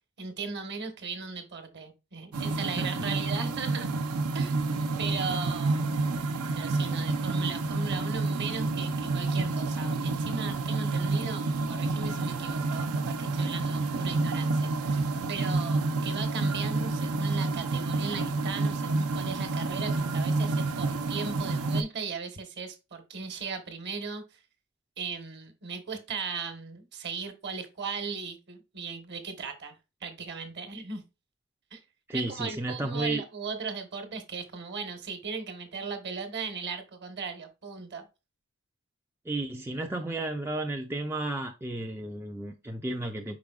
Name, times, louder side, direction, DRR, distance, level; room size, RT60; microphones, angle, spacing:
voice 1, 0.2-3.9 4.3-4.6 5.0-6.0 6.5-24.4 25.0-31.0 31.7-31.8 32.1-38.1, right 5 dB, 50° right, 1.1 m, -37 dB
sound 1, 2.3-21.8, right 3 dB, 75° right, 0.7 m, -29 dB
voice 2, 2.8-3.1 32.1-33.2 39.3-43.4, right 2 dB, 10° right, 0.3 m, -33 dB
4.9 x 4.7 x 2.3 m
head